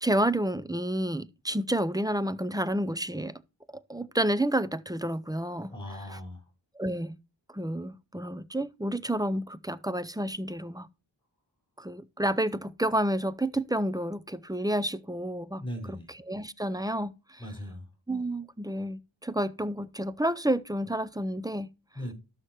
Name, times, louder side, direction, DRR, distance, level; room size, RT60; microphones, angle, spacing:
voice 1, 0.0-3.3 3.9-5.7 6.1-6.2 6.8-7.2 7.5-10.9 11.8-17.4 18.1-21.7, right 1 dB, 10° right, 0.5 m, -30 dB
voice 2, 5.7-6.4 15.6-16.1 17.4-17.9 21.9-22.1, equal, 10° left, 4.8 m, -38 dB
12.0 x 6.6 x 2.9 m
wide cardioid pair, 65°, 46 cm